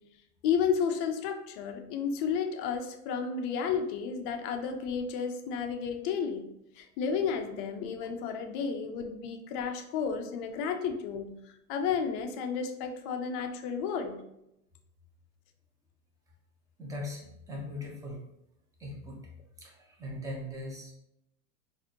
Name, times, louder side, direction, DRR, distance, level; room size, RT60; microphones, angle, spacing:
voice 1, 0.4-6.5 6.8-14.2, left 6 dB, 40° left, 5 dB, 0.4 m, -32 dB
voice 2, 16.8-18.2 18.8-19.2 19.6-20.9, left 1 dB, 10° right, -3 dB, 0.6 m, -40 dB
4.0 x 2.5 x 2.8 m, 0.83 s
supercardioid pair, 130°, 45 cm